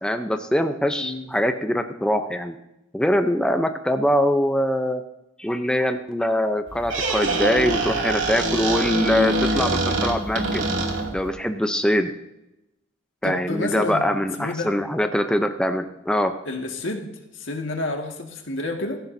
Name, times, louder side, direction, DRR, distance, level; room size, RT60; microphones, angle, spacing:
voice 1, 0.0-2.6 2.9-5.0 5.4-10.7 11.1-12.1 13.2-16.3, equal, 5° left, 6 dB, 0.6 m, -23 dB
Squeak, 6.7-11.3, right 2 dB, 85° right, 2.6 m, -24 dB
voice 2, 13.2-14.7 16.4-17.1 17.3-19.0, left 2 dB, 85° left, 2 dB, 1.9 m, -29 dB
16.5 x 14.5 x 2.7 m, 0.90 s
head